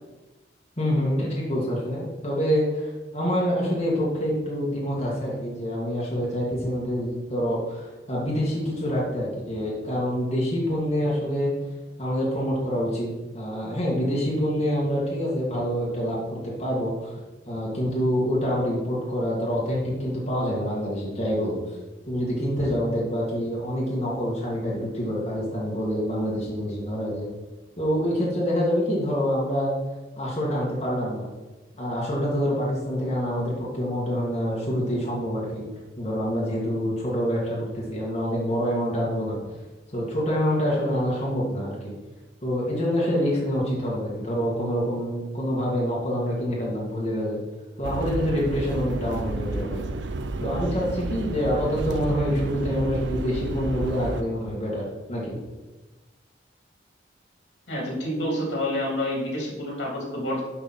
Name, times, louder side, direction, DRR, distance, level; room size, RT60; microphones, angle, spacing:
voice 1, 0.8-11.5 12.0-13.1 13.3-17.2 17.5-21.8 22.1-27.3 27.8-29.7 30.2-31.3 31.8-35.6 36.0-39.4 39.9-41.9 42.4-47.4 47.8-49.8 50.4-54.8 55.1-55.4, equal, 35° left, -6 dB, 2.2 m, -26 dB
sound 1, 47.8-54.2, right 3 dB, 80° right, 0.6 m, -31 dB
voice 2, 57.7-60.4, left 1 dB, 80° left, -2 dB, 3.5 m, -28 dB
12.0 x 5.9 x 4.4 m, 1.2 s
head